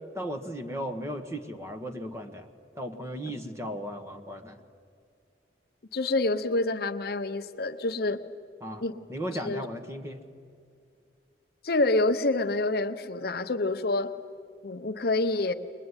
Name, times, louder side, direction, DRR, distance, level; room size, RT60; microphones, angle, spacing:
voice 1, 0.1-4.6 8.6-8.8 9.1-10.2, equal, 15° right, 7 dB, 1.4 m, -36 dB
voice 2, 5.9-8.2 8.8-8.9 9.4-9.6 11.6-14.1 14.6-15.5, left 2 dB, 60° left, 9 dB, 0.8 m, -27 dB
22.0 x 21.5 x 9.8 m, 2.3 s
head